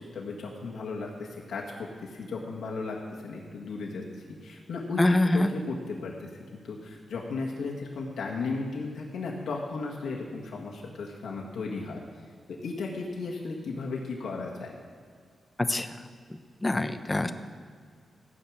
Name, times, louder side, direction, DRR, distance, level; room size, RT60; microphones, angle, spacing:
voice 1, 0.0-3.0 3.2-6.3 6.6-14.7, left 3 dB, 90° left, -3 dB, 1.7 m, -35 dB
voice 2, 5.0-5.5 15.6-16.0 16.3-17.3, left 1 dB, 20° left, 9 dB, 0.7 m, -25 dB
15.5 x 6.3 x 8.7 m, 2.1 s
wide cardioid pair, 120°, 0 cm